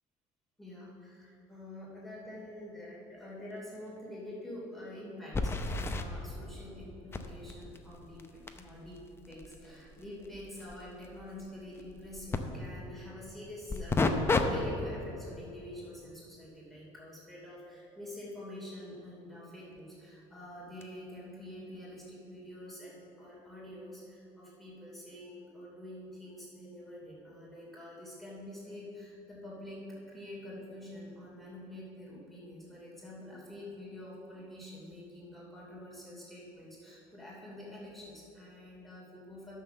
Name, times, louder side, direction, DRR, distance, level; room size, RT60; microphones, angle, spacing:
voice 1, 0.6-9.0 9.3-14.1 14.4-29.8 30.1-39.5, left 1 dB, ahead, -7 dB, 2.9 m, -47 dB
sound 1, 3.5-3.6 4.0-4.1 5.3-6.1 7.1-12.4 13.7-14.4 14.9-15.1 19.8-19.9 20.8-20.9, left 3 dB, 15° left, 0.6 m, -34 dB
11.0 x 6.4 x 6.7 m, 2.9 s
cardioid pair, 145°, 14 cm